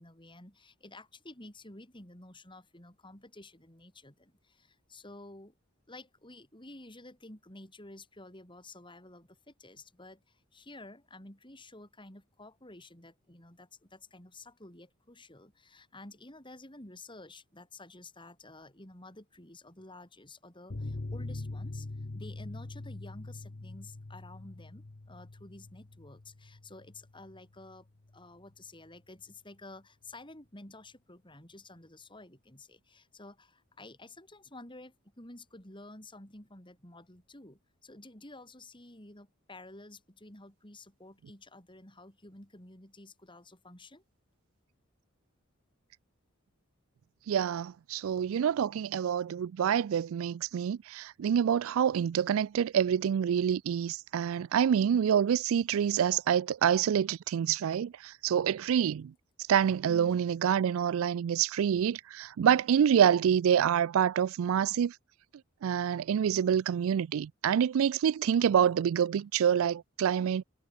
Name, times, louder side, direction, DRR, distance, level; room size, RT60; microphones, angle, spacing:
voice 1, 0.0-5.6 5.9-27.9 28.1-44.0 59.9-60.1, left 2 dB, 25° left, 5.3 m, -51 dB
sound 1, 20.7-27.8 28.1-28.2 28.5-28.6, left 2 dB, 50° left, 0.9 m, -43 dB
voice 2, 47.3-59.1 59.5-64.9 65.6-70.4, right 8 dB, 75° right, 0.3 m, -27 dB
head